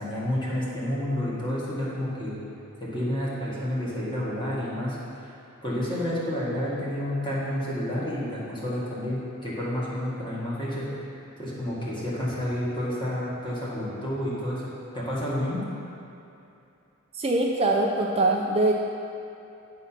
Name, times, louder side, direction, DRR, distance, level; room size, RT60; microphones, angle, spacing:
voice 1, 0.0-2.3 2.8-5.3 5.6-10.9 11.4-15.6, left 1 dB, 25° left, -8 dB, 1.9 m, -30 dB
voice 2, 17.1-18.7, right 2 dB, 30° right, 0 dB, 0.4 m, -23 dB
9.7 x 4.0 x 5.8 m, 2.7 s
head